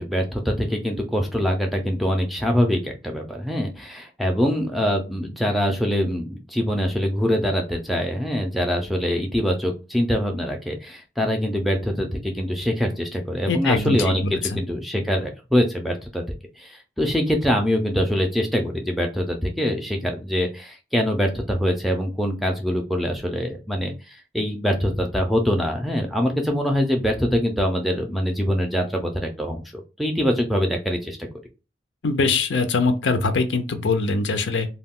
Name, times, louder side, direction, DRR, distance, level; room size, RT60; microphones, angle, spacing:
voice 1, 0.0-16.2 16.6-29.6 30.0-31.3, equal, ahead, 0.4 m, -24 dB
voice 2, 13.5-14.1 14.5-14.6 32.0-34.7, left 3 dB, 85° left, 0.5 m, -22 dB
2.2 x 2.2 x 3.5 m
head